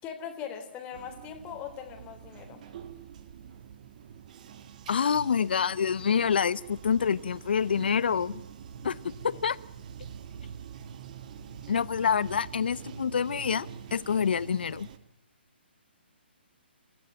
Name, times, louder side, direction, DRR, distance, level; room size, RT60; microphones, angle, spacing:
voice 1, 0.0-2.6, left 8 dB, 20° left, 4 dB, 3.7 m, -40 dB
Bathtub (filling or washing), 0.9-15.0, right 7 dB, 45° right, 2.0 m, -45 dB
voice 2, 4.9-8.4 8.8-9.6 11.7-14.9, left 7 dB, 60° left, 20 dB, 1.0 m, -27 dB
29.0 x 15.0 x 10.0 m, 0.81 s
figure-of-eight pair, 135°, 6 cm